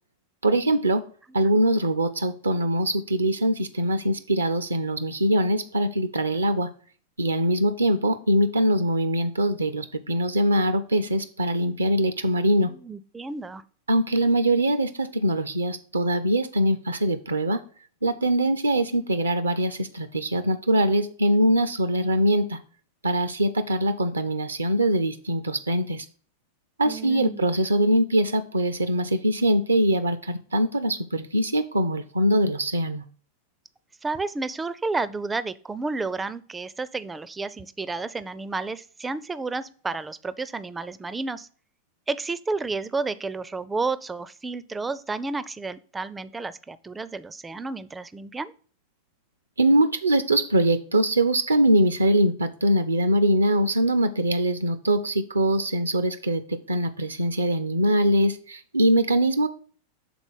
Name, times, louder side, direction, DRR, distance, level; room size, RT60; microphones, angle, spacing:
voice 1, 0.4-1.0 1.3-6.7 7.2-12.7 13.9-17.6 18.0-22.6 23.0-26.1 26.8-33.0 49.6-59.5, right 1 dB, 80° right, 11 dB, 0.4 m, -23 dB
voice 2, 12.7-13.6 26.8-27.5 34.0-41.5 42.1-48.5, right 3 dB, 10° right, 16 dB, 0.4 m, -31 dB
6.0 x 3.9 x 5.4 m, 0.43 s
figure-of-eight pair, 90°, 0 cm